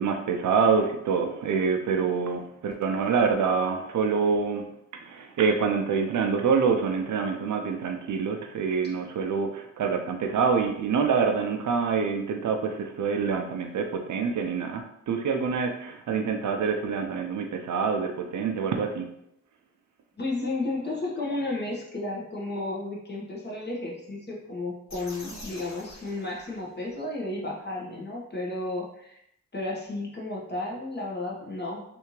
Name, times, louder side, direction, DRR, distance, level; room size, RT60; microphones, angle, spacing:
voice 1, 0.0-4.6 5.1-19.1, right 5 dB, 70° right, 4 dB, 0.6 m, -26 dB
voice 2, 20.2-29.2 29.5-31.8, left 2 dB, 35° left, -3 dB, 1.3 m, -33 dB
sound 1, 24.9-27.0, left 1 dB, 60° left, 1.3 m, -46 dB
3.3 x 2.7 x 3.1 m, 0.75 s
supercardioid pair, 45°, 31 cm